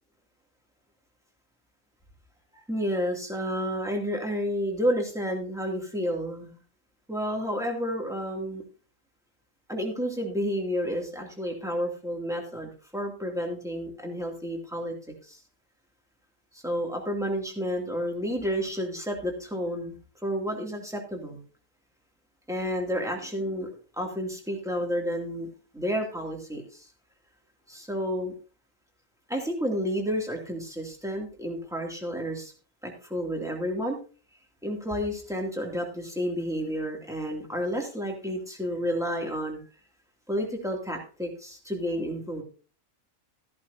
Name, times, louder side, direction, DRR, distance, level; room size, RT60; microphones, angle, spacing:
voice 1, 2.7-6.6 7.1-8.6 9.7-15.0 15.2-15.4 16.5-20.0 20.2-21.4 22.5-25.5 25.7-26.9 27.7-28.3 29.3-32.5 32.8-34.0 34.6-39.6 40.3-42.4, equal, ahead, 0 dB, 2.5 m, -30 dB
14.0 x 11.5 x 2.7 m, 0.37 s
omnidirectional pair, 1.4 m